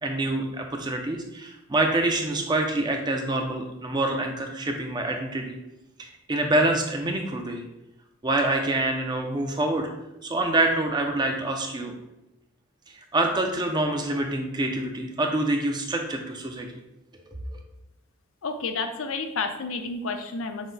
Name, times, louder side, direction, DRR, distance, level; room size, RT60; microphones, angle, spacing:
voice 1, 0.0-5.6 6.0-7.6 8.2-9.9 10.2-11.9 13.1-16.7 17.3-17.6, right 2 dB, 20° right, 3 dB, 0.4 m, -26 dB
voice 2, 18.4-20.7, left 4 dB, 70° left, 6 dB, 0.5 m, -30 dB
6.1 x 2.1 x 3.9 m, 0.92 s
head